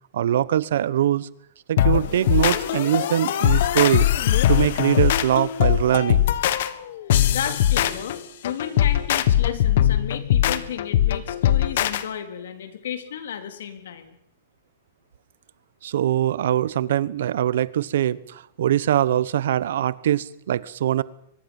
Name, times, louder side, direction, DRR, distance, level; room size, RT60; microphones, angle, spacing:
voice 1, 0.1-1.3 1.7-4.1 4.5-6.3 15.8-21.0, right 11 dB, 75° right, 19 dB, 1.1 m, -22 dB
sound 1, 1.8-12.0, left 11 dB, 60° left, 1.5 m, -21 dB
voice 2, 7.3-14.2, left 9 dB, 80° left, 8 dB, 3.5 m, -33 dB
24.0 x 20.5 x 7.2 m, 0.71 s
supercardioid pair, 165°, 0 cm